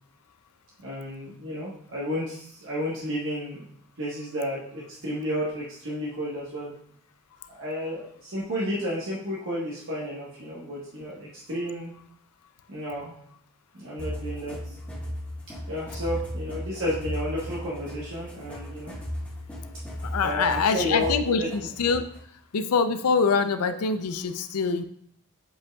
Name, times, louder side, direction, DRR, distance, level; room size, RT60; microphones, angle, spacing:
voice 1, 0.8-3.6 4.0-6.7 7.5-11.9 12.7-13.1 13.7-14.8 15.7-18.9 20.2-21.5 23.7-23.8, equal, 60° right, -6 dB, 1.2 m, -32 dB
sound 1, 14.0-22.2, equal, 5° left, 1.4 m, -36 dB
voice 2, 20.0-22.0 22.5-24.8, left 5 dB, 90° left, 10 dB, 0.5 m, -24 dB
7.7 x 5.3 x 2.3 m, 0.68 s
head